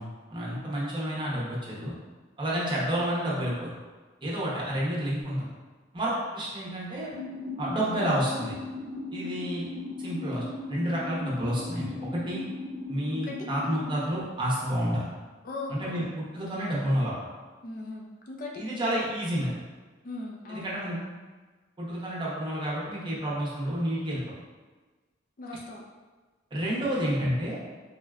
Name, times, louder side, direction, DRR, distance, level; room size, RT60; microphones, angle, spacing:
voice 1, 0.0-1.9 2.4-3.7 4.2-5.5 5.9-7.1 7.6-8.6 9.1-9.6 10.0-12.4 12.9-15.0 15.7-17.1 18.6-19.5 20.5-21.0 21.8-24.2 26.5-27.6, equal, 25° right, -6 dB, 0.7 m, -30 dB
sound 1, 7.1-14.0, left 2 dB, 75° right, 0.5 m, -37 dB
voice 2, 15.4-16.1 17.6-18.6 20.0-20.7 25.4-25.8, left 2 dB, 45° left, -1 dB, 0.4 m, -38 dB
3.8 x 2.2 x 2.3 m, 1.3 s
head